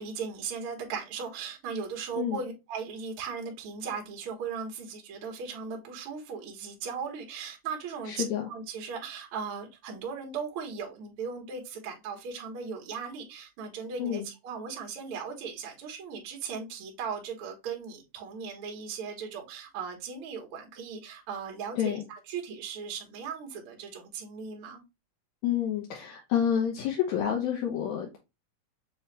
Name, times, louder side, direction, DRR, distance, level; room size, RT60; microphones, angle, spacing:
voice 1, 0.0-24.8, right 6 dB, 60° right, 1.5 m, -38 dB
voice 2, 8.1-8.5 14.0-14.3 21.8-22.0 25.4-28.2, left 9 dB, 70° left, 2.0 m, -29 dB
6.7 x 2.4 x 3.2 m
omnidirectional pair, 3.9 m